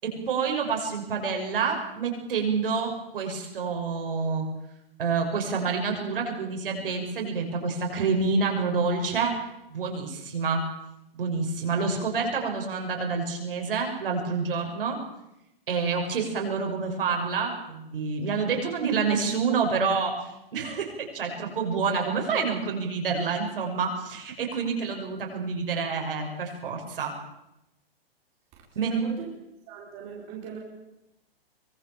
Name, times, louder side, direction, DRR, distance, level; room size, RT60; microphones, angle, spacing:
voice 1, 0.0-4.5 5.0-9.3 9.7-10.7 11.1-15.0 15.7-27.1 28.7-29.0, right 5 dB, 65° right, 2 dB, 6.4 m, -28 dB
voice 2, 28.7-29.3 29.7-30.6, right 7 dB, 20° right, -2 dB, 4.7 m, -39 dB
23.5 x 22.0 x 7.4 m, 0.89 s
hypercardioid pair, 170°, 30 cm